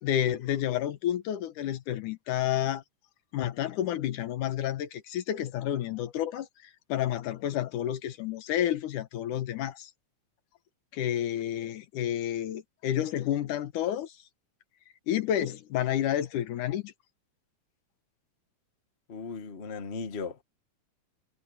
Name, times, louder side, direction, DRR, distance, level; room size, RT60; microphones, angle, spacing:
voice 1, 0.0-2.8 3.3-6.5 6.9-9.9 10.9-14.1 15.1-16.9, left 11 dB, 75° left, 2.5 m, -30 dB
voice 2, 19.1-20.4, left 5 dB, 40° left, 0.9 m, -37 dB
omnidirectional pair, 3.9 m